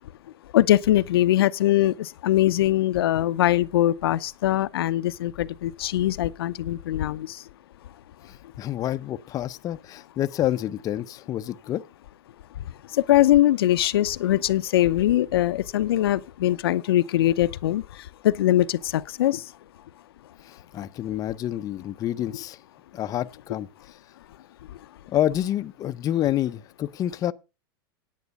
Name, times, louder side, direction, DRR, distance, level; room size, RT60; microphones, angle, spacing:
voice 1, 0.5-7.4 12.9-17.8 18.2-19.4, left 13 dB, 85° left, 0.7 m, -22 dB
voice 2, 8.3-11.8 20.4-22.6 22.9-23.7 25.1-27.3, left 12 dB, 30° left, 0.6 m, -28 dB
9.6 x 9.2 x 5.2 m
supercardioid pair, 130°, 12 cm